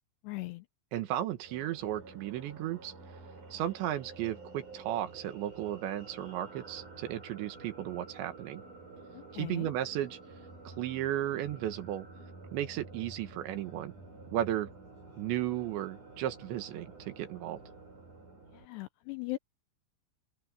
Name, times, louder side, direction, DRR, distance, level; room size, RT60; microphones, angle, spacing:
voice 1, 0.2-0.6 9.1-9.7 18.5-19.4, left 19 dB, 85° left, 2.6 m, -39 dB
voice 2, 0.9-2.9 3.5-8.6 9.3-10.2 10.6-12.1 12.5-13.9 14.3-14.7 15.2-17.6, right 12 dB, 75° right, 3.5 m, -34 dB
sound 1, 1.4-18.7, right 3 dB, 40° right, 9.3 m, -50 dB
open air
omnidirectional pair, 5.5 m